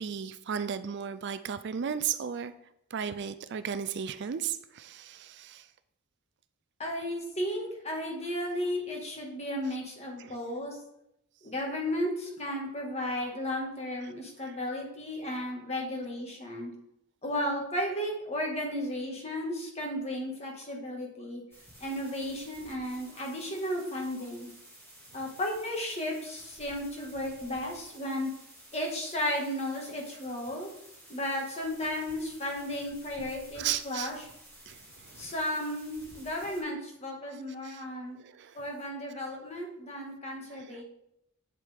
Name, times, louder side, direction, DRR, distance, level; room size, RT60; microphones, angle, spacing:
voice 1, 0.0-2.5 2.9-5.7 10.2-10.4 14.4-14.5 33.6-34.1 34.7-35.3 37.6-37.8 38.2-38.6 40.5-40.8, right 8 dB, 55° right, 12 dB, 0.4 m, -35 dB
voice 2, 6.8-10.8 11.4-16.7 17.2-21.4 21.8-24.5 25.1-28.3 28.7-30.7 31.1-34.2 35.2-38.2 38.5-40.8, left 1 dB, 30° left, 0 dB, 1.8 m, -34 dB
sound 1, 21.5-36.6, equal, 10° left, 2.2 m, -53 dB
8.3 x 7.5 x 3.6 m, 0.80 s
head